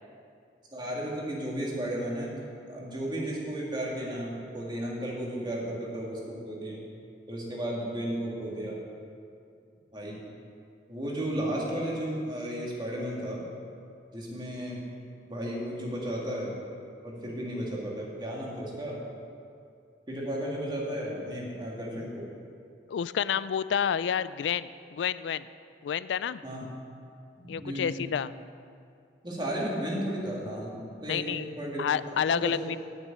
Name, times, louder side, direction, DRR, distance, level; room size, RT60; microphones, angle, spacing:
voice 1, 0.7-2.4 2.7-6.8 7.3-8.8 9.9-10.2 10.9-13.5 14.1-14.8 15.3-16.5 17.0-19.0 20.1-22.3 26.4-26.6 27.4-27.9 29.2-31.9 32.3-32.6, right 1 dB, 25° right, -4 dB, 2.3 m, -34 dB
voice 2, 22.9-25.5 25.8-26.4 27.5-28.3 31.1-31.5 31.8-32.8, left 8 dB, 85° left, 16 dB, 0.3 m, -29 dB
9.3 x 6.6 x 8.7 m, 2.4 s
head